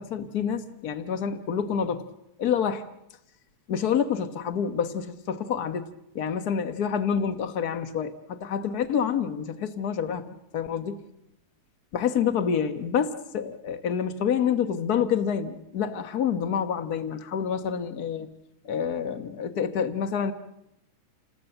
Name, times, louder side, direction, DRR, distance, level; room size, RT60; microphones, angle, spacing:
voice 1, 0.0-2.0 2.4-2.8 3.7-5.8 6.1-10.3 10.5-11.0 11.9-18.3 18.6-20.3, left 7 dB, 80° left, 10 dB, 0.8 m, -27 dB
29.5 x 19.5 x 7.9 m, 0.85 s
omnidirectional pair, 3.4 m